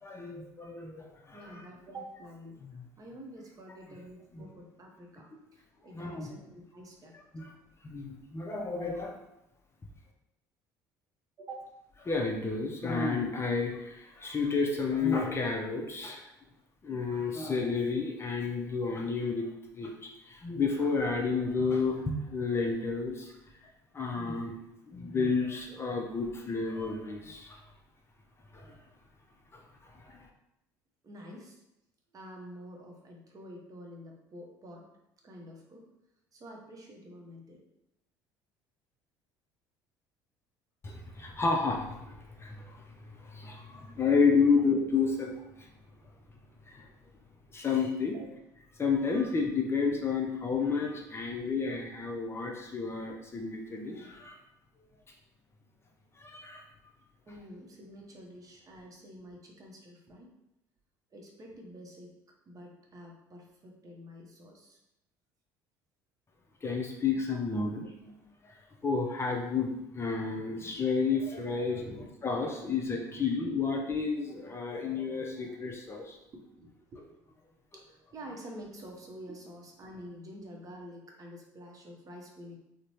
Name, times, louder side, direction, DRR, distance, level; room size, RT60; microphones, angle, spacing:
voice 1, 0.0-1.6 2.6-2.9 4.3-4.5 5.9-6.3 7.3-7.5 7.8-9.2 12.0-16.3 16.8-19.5 19.7-23.4 23.6-24.5 24.9-27.6 28.5-28.7 29.5-30.3 40.8-45.3 45.6-45.7 46.7-46.9 47.5-48.2 48.8-54.4 56.2-56.7 66.6-67.9 68.4-71.8 72.2-76.2, left 4 dB, 25° left, 1 dB, 0.5 m, -31 dB
voice 2, 1.3-2.6 3.0-5.3 5.5-7.1 11.4-11.7 31.0-31.6 32.1-34.8 35.2-35.9 36.3-37.6 48.1-48.3 57.3-60.3 61.1-62.1 62.5-64.8 67.6-67.7 71.8-72.0 72.6-72.7 73.1-73.3 76.3-77.0 77.7-82.6, equal, 35° right, 0 dB, 0.7 m, -48 dB
2.6 x 2.1 x 3.0 m, 0.86 s
hypercardioid pair, 60°, 10 cm